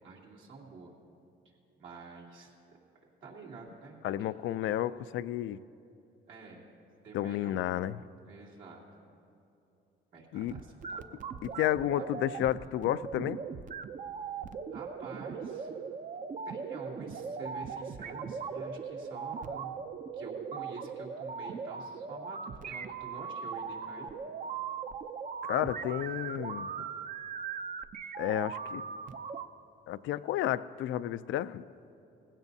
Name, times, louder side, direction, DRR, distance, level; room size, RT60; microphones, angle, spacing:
voice 1, 0.0-0.9 1.8-2.5 3.2-4.0 4.3-4.7 6.3-6.6 7.0-7.6 8.3-8.8 10.1-11.4 14.7-15.7 16.4-19.7 20.1-22.4 22.6-24.1, right 3 dB, 75° right, -4 dB, 2.8 m, -47 dB
voice 2, 4.0-5.6 7.1-8.0 10.3-10.5 11.4-13.4 25.4-26.9 28.2-28.8 29.9-31.6, left 12 dB, 75° left, 14 dB, 0.4 m, -31 dB
sound 1, 10.5-29.5, right 6 dB, 40° right, 0.5 m, -39 dB
19.0 x 16.0 x 2.7 m, 2.7 s
cardioid pair, 90°, 20 cm